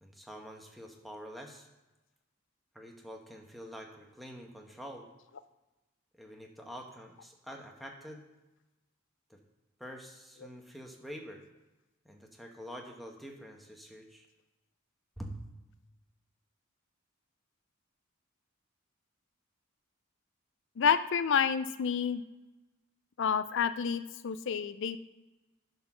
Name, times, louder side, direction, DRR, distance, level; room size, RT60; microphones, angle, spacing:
voice 1, 0.0-1.7 2.7-5.1 6.2-8.2 9.3-9.4 9.8-11.4 12.0-14.3 15.2-15.4, equal, ahead, 1 dB, 1.1 m, -46 dB
voice 2, 20.8-22.2 23.2-25.0, left 7 dB, 60° left, 13 dB, 0.5 m, -29 dB
11.0 x 4.1 x 6.1 m, 1.1 s
head